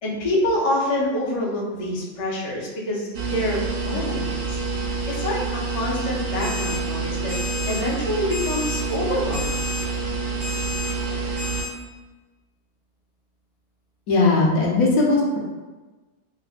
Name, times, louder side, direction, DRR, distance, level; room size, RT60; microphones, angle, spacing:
voice 1, 0.0-4.6 5.1-7.4 7.7-9.7, left 1 dB, 45° left, -4 dB, 0.4 m, -26 dB
sound 1, 3.1-11.6, right 4 dB, 60° right, 0.7 m, -27 dB
Alarm, 6.4-6.8 7.3-7.8 8.3-8.8 9.3-9.8 10.4-10.9 11.4-11.7, left 3 dB, 80° right, 2.1 m, -32 dB
voice 2, 14.1-15.4, left 3 dB, 70° left, -2 dB, 1.1 m, -18 dB
4.8 x 2.1 x 2.4 m, 1.2 s
omnidirectional pair, 1.6 m